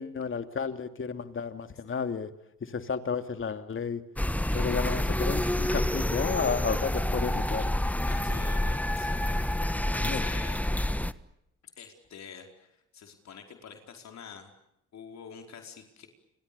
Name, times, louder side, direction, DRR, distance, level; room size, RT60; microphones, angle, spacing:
voice 1, 0.0-2.3 2.6-4.0 4.5-7.7 10.0-10.2, left 5 dB, 40° left, 8 dB, 2.8 m, -32 dB
sound 1, 4.2-11.1, left 1 dB, 5° left, 1.3 m, -28 dB
voice 2, 8.1-10.8 11.8-14.5 14.9-16.1, left 6 dB, 60° left, 4 dB, 4.9 m, -47 dB
30.0 x 25.5 x 7.1 m, 0.81 s
cardioid pair, 90°, 30 cm